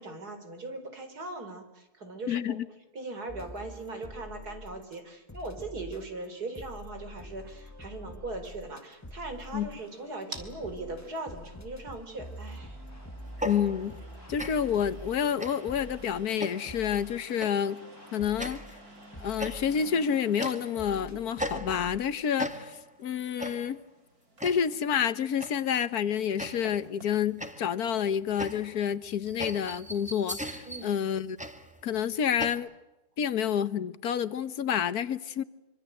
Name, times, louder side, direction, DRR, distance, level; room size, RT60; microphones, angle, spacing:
voice 1, 0.0-2.6 2.9-12.8 30.7-31.0, right 2 dB, 85° right, 7 dB, 4.7 m, -40 dB
voice 2, 2.3-2.6 9.5-9.7 13.4-14.0 14.3-17.8 18.1-18.6 19.2-22.7 23.0-23.8 24.4-31.4 31.8-32.7 33.2-35.4, left 8 dB, 75° left, 14 dB, 1.6 m, -29 dB
sound 1, 3.3-5.0 5.3-22.0, left 1 dB, 10° left, 1.1 m, -46 dB
sound 2, 8.5-27.2, right 2 dB, 70° right, 4.2 m, -52 dB
sound 3, 13.3-14.1 14.4-14.8 15.4-15.8 16.4-16.8 17.4-17.7 18.4-18.8 19.4-19.9 20.4-20.9 21.4-22.1 22.4-22.9 23.4-23.8 24.4-24.8 25.4-25.8 26.4-26.9 27.4-32.5, equal, 5° right, 1.9 m, -38 dB
26.0 x 25.5 x 7.9 m, 1.0 s
omnidirectional pair, 1.6 m